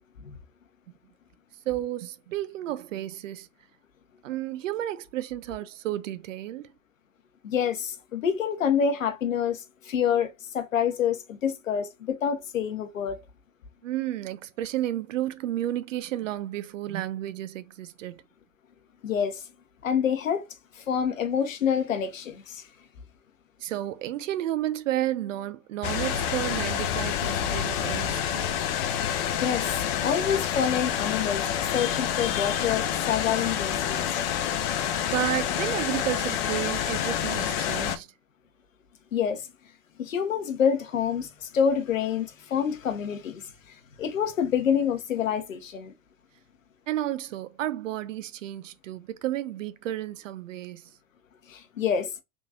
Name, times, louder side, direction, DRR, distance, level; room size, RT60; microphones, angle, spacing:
voice 1, 1.7-3.5 4.2-6.7 13.8-18.2 23.6-28.5 35.1-38.1 46.9-50.9, right 13 dB, 75° right, 0.5 m, -32 dB
voice 2, 7.4-13.2 19.0-19.5 19.8-20.5 20.7-22.6 29.4-34.2 39.1-39.5 40.0-45.9 51.5-52.1, left 7 dB, 85° left, 0.8 m, -27 dB
sound 1, 25.8-38.0, left 9 dB, 50° left, 0.7 m, -28 dB
3.6 x 3.0 x 2.6 m
hypercardioid pair, 90°, 38 cm